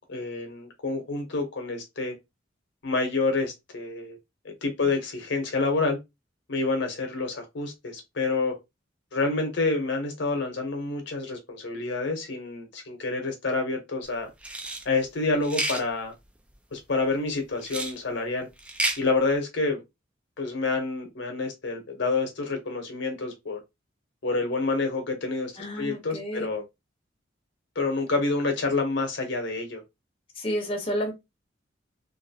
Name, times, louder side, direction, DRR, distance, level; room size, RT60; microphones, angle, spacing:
voice 1, 0.0-2.1 2.8-4.2 4.4-6.0 6.5-8.6 9.1-14.3 14.8-16.1 16.7-18.5 19.0-19.8 20.4-23.6 24.2-26.6 27.8-29.8, left 3 dB, 65° left, 0.7 m, -28 dB
sound 1, 14.4-14.8 15.4-15.8 17.6-17.9 18.6-19.0, right 1 dB, 5° right, 0.3 m, -29 dB
voice 2, 25.6-26.5 30.4-31.1, equal, 30° left, 0.7 m, -30 dB
2.5 x 2.3 x 2.6 m
head